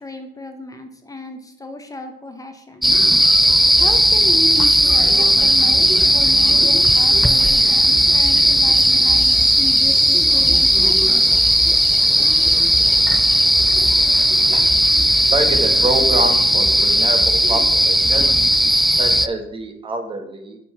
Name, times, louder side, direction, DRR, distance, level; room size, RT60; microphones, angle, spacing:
voice 1, 0.0-2.9 3.8-11.2, left 2 dB, 20° left, 6 dB, 0.8 m, -34 dB
sound 1, 2.8-19.3, equal, ahead, 0.3 m, -15 dB
voice 2, 15.3-18.3 19.0-20.6, right 2 dB, 30° right, 5 dB, 1.2 m, -26 dB
7.3 x 3.7 x 5.8 m, 0.81 s
cardioid pair, 110°, 17 cm